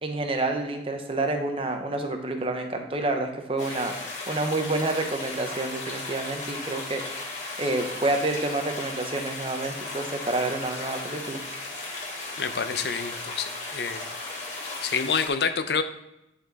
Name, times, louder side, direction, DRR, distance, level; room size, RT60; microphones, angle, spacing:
voice 1, 0.0-3.9 4.3-7.0 7.6-11.4, right 2 dB, 30° right, 4 dB, 0.8 m, -28 dB
sound 1, 3.6-15.3, left 2 dB, 40° left, 1.9 m, -36 dB
voice 2, 12.4-14.1 14.8-15.8, left 6 dB, 65° left, 9 dB, 0.6 m, -28 dB
10.5 x 4.3 x 4.1 m, 0.88 s
head